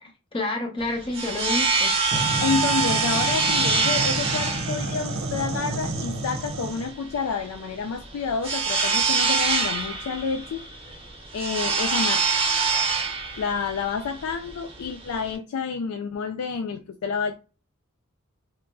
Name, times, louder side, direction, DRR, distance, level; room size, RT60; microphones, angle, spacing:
voice 1, 0.0-1.9, left 2 dB, 25° left, 0.6 m, -29 dB
sound 1, 0.8-15.4, right 4 dB, 25° right, 0.7 m, -25 dB
sound 2, 2.1-6.9, right 2 dB, 70° right, 0.5 m, -30 dB
voice 2, 2.4-10.7 11.3-12.4 13.4-17.3, left 5 dB, 85° left, 0.3 m, -29 dB
2.9 x 2.5 x 2.2 m
head